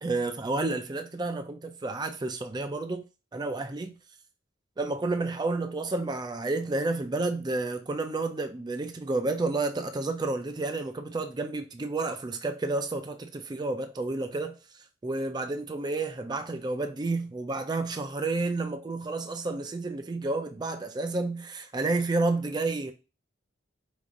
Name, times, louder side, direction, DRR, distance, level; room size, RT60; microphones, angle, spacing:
voice 1, 0.0-3.0 3.3-4.0 4.8-22.9, right 3 dB, 20° right, 0.4 m, -30 dB
5.3 x 2.5 x 3.6 m
head